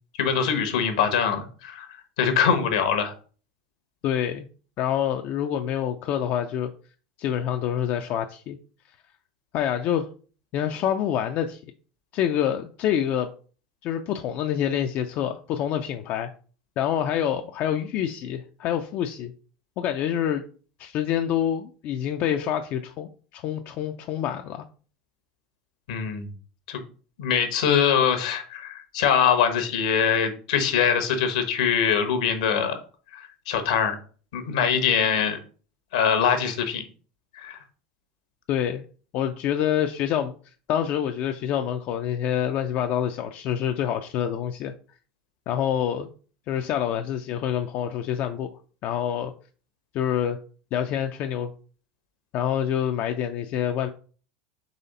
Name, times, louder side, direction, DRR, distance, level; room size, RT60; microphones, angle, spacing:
voice 1, 0.2-1.9 2.2-3.1 25.9-26.3 26.7-26.8 27.2-32.8 33.1-34.0 34.3-35.4 35.9-36.8 37.3-37.6, left 7 dB, 75° left, 8 dB, 1.0 m, -23 dB
voice 2, 4.0-4.5 4.8-6.7 7.2-8.6 9.5-10.1 10.5-11.6 12.1-13.3 13.8-16.3 16.8-19.3 19.8-20.4 20.8-24.6 38.5-38.8 39.1-40.3 40.7-44.7 45.5-46.1 46.5-48.5 48.8-49.3 49.9-50.4 50.7-51.5 52.3-53.9, left 10 dB, 50° left, 5 dB, 0.4 m, -26 dB
4.2 x 3.1 x 4.0 m, 0.40 s
hypercardioid pair, 95°, 4 cm